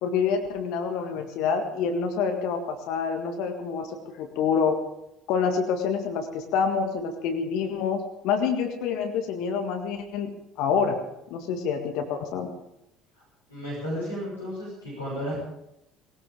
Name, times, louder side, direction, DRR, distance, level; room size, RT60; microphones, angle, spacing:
voice 1, 0.0-4.8 5.3-11.0 11.3-12.5, left 6 dB, 55° left, 5 dB, 1.7 m, -27 dB
voice 2, 13.5-15.4, equal, 85° left, -8 dB, 7.3 m, -33 dB
20.0 x 19.0 x 3.8 m, 0.83 s
figure-of-eight pair, 60°, 0 cm